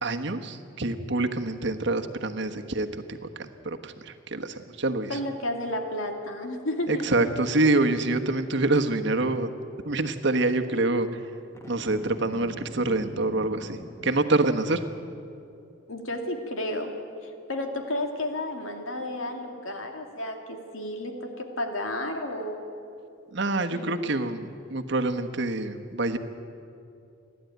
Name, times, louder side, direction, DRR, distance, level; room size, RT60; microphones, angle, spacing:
voice 1, 0.0-5.2 6.9-9.5 9.8-11.2 11.7-14.8 23.3-26.2, right 2 dB, 60° right, 6 dB, 1.3 m, -26 dB
voice 2, 5.1-7.0 15.9-16.9 17.2-22.6 23.7-24.0, left 1 dB, 75° left, 4 dB, 2.6 m, -32 dB
Boom, 11.5-14.7, equal, 15° left, 1.6 m, -43 dB
30.0 x 11.5 x 9.4 m, 2.6 s
head